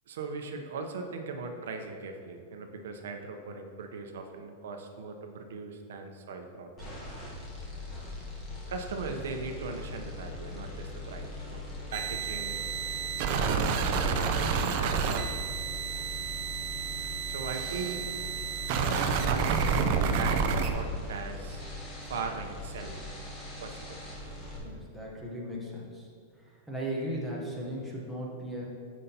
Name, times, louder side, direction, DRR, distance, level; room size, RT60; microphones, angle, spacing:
voice 1, 0.1-6.7 8.5-11.6 11.9-12.6 13.4-15.3 17.3-18.0 19.2-21.7 22.1-23.0 23.6-24.0, right 4 dB, 80° right, 4 dB, 0.7 m, -39 dB
sound 1, 6.8-24.6, left 2 dB, 15° left, 1.2 m, -41 dB
sound 2, 11.9-20.7, right 6 dB, 40° right, 0.4 m, -30 dB
voice 2, 24.6-26.1 26.4-28.7, equal, ahead, -5 dB, 0.9 m, -37 dB
9.1 x 5.5 x 2.8 m, 2.1 s
supercardioid pair, 175°, 0 cm